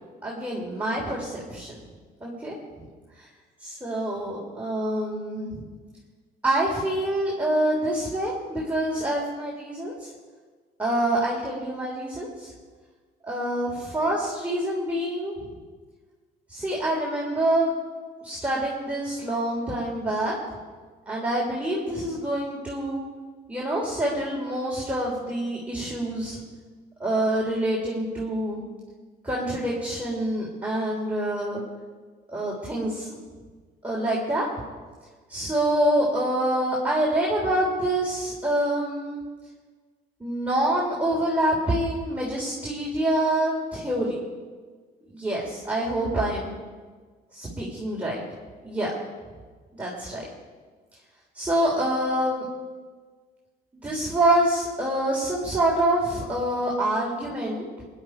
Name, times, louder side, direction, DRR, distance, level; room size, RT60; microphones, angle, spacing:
voice 1, 0.2-1.8 2.2-2.8 3.2-3.3 3.6-5.6 6.4-10.1 10.8-12.5 13.2-15.5 16.5-17.7 18.2-20.4 21.1-23.0 23.5-26.4 27.0-28.6 29.2-31.6 32.3-33.2 33.8-34.5 35.3-39.2 40.2-44.2 45.1-46.5 47.3-48.2 48.6-48.9 49.8-50.2 51.3-52.4 53.7-57.7, right 1 dB, 10° right, -5 dB, 3.3 m, -26 dB
21.5 x 11.0 x 4.5 m, 1.5 s
cardioid pair, 110°, 17 cm